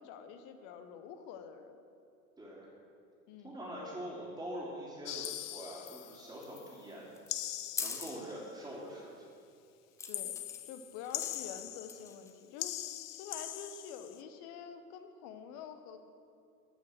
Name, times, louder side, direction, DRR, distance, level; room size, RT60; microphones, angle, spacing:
voice 1, 0.0-1.8 3.3-3.6 10.1-10.4 10.6-12.9 13.2-16.0, left 7 dB, 40° left, 8 dB, 1.0 m, -47 dB
voice 2, 2.4-2.7 3.4-7.2 7.8-9.1 11.1-11.2, right 1 dB, 10° right, -9 dB, 3.0 m, -44 dB
sound 1, 5.1-6.7 7.3-8.5 10.1-12.3 12.6-14.2, left 13 dB, 75° left, 0.6 m, -41 dB
sound 2, 7.2-8.2 10.0-10.6 11.0-11.6 11.9-12.3, left 5 dB, 5° left, 0.4 m, -41 dB
15.0 x 5.7 x 6.5 m, 2.5 s
figure-of-eight pair, 90°, 47 cm